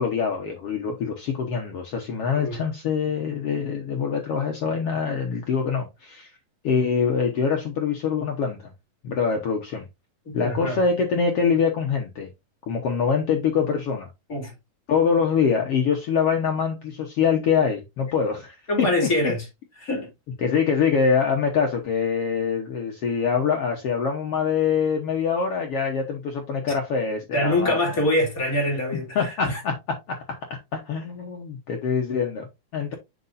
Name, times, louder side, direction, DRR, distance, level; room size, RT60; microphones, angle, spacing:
voice 1, 0.0-6.3 6.6-8.7 9.0-9.8 10.3-12.3 12.7-14.1 14.9-19.3 20.4-27.8 29.1-29.7 30.1-32.9, left 6 dB, 70° left, 1.4 m, -24 dB
voice 2, 10.2-10.8 14.3-14.5 18.7-19.4 19.8-20.1 27.3-29.6, left 1 dB, 25° left, 2.9 m, -24 dB
8.2 x 6.0 x 2.6 m
omnidirectional pair, 4.1 m